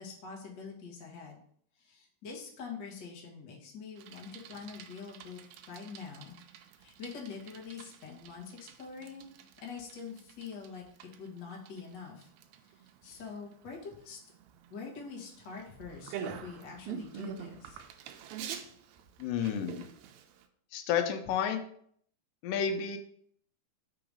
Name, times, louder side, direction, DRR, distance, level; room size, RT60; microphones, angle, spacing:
voice 1, 0.0-1.4 1.7-5.4 5.7-6.4 6.8-9.3 9.6-10.8 11.2-12.3 12.6-14.2 14.7-17.8, left 5 dB, 55° left, -2 dB, 1.2 m, -45 dB
Bicycle, 4.0-20.5, right 8 dB, 90° right, 1.6 m, -47 dB
voice 2, 19.2-19.8 20.7-21.6 22.4-23.0, left 7 dB, 85° left, 6 dB, 2.3 m, -31 dB
4.9 x 3.9 x 5.1 m, 0.63 s
omnidirectional pair, 3.9 m